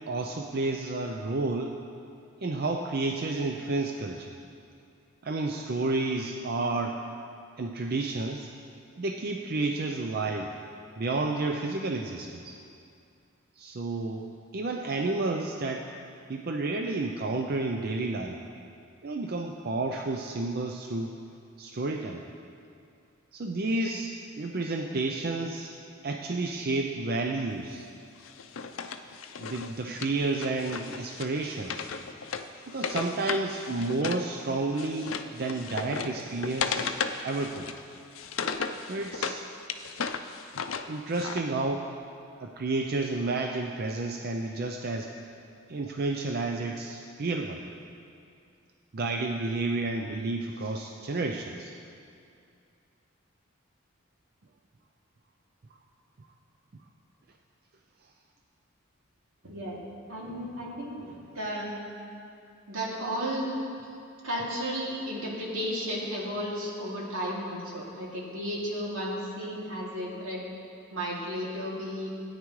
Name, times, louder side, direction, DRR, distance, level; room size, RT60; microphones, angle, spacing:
voice 1, 0.1-1.8 2.4-4.3 5.2-7.0 7.6-8.5 9.0-10.6 11.0-12.6 13.6-15.9 16.3-18.4 19.0-21.2 21.6-22.2 23.3-25.8 26.0-27.9 29.4-31.9 32.7-36.9 37.2-37.7 38.8-39.4 40.9-41.9 42.4-45.1 45.7-47.6 48.9-51.7, right 3 dB, 50° right, 2 dB, 0.5 m, -31 dB
Wood, 28.2-34.3 34.5-39.4 39.7-41.4, left 6 dB, 75° left, 0.5 m, -35 dB
voice 2, 59.4-59.8 60.1-61.7 62.7-63.5 64.2-70.4 70.9-72.1, equal, 85° right, -5 dB, 2.5 m, -33 dB
17.0 x 9.5 x 3.1 m, 2.5 s
head